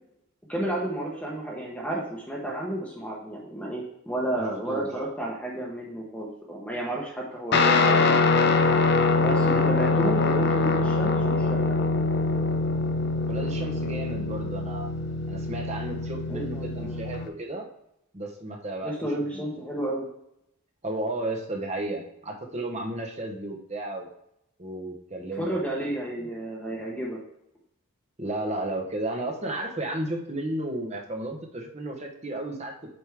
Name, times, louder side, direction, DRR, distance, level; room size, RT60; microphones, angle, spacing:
voice 1, 0.5-8.2 9.2-11.8 16.3-17.0 18.8-20.0 25.4-27.2, right 1 dB, 5° left, -3 dB, 1.0 m, -31 dB
voice 2, 4.4-4.9 13.2-14.9 15.3-17.6 18.1-18.9 19.3-19.6 20.8-24.1 24.6-25.9 26.2-26.3 28.2-32.9, right 1 dB, 30° right, 2 dB, 1.0 m, -33 dB
Guitar, 7.5-17.3, left 3 dB, 50° left, 0.6 m, -24 dB
7.9 x 5.2 x 3.5 m, 0.78 s
head